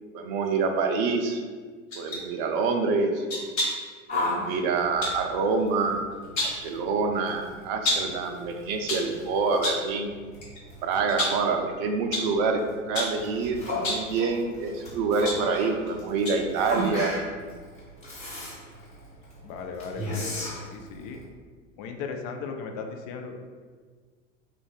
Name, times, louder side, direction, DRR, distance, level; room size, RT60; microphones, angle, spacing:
voice 1, 0.1-1.4 2.0-3.3 4.1-6.0 6.4-10.1 10.8-12.6 12.9-17.1, right 4 dB, 40° right, 4 dB, 0.5 m, -26 dB
sound 1, 1.9-2.2 3.3-3.9 5.0-5.2 6.1-6.7 7.8-8.2 8.7-9.1 9.6-9.9 10.4-10.6 11.1-11.5 12.1-12.4 12.9-13.2 13.7-14.1 14.9-15.9 16.2-16.5 16.8-16.9, left 1 dB, 70° left, 1.2 m, -30 dB
Yell, 4.1-21.2, left 1 dB, 15° left, 1.2 m, -37 dB
voice 2, 19.4-21.2 21.8-23.4, left 5 dB, 35° left, 4 dB, 0.4 m, -37 dB
3.3 x 2.4 x 3.8 m, 1.6 s
figure-of-eight pair, 80°, 39 cm